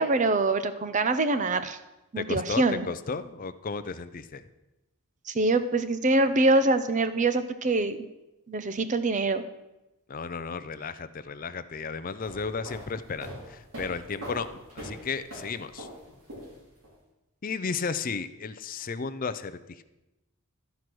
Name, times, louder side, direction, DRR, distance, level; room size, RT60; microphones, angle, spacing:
voice 1, 0.0-1.8 2.1-2.9 5.3-8.0 8.5-9.4, right 2 dB, 35° right, 11 dB, 0.6 m, -24 dB
voice 2, 2.2-4.4 10.1-14.5 14.7-15.9 17.4-19.8, left 5 dB, 40° left, 13 dB, 0.5 m, -34 dB
sound 1, 12.1-16.9, equal, 80° right, 3.2 m, -42 dB
13.5 x 4.7 x 6.0 m, 0.98 s
head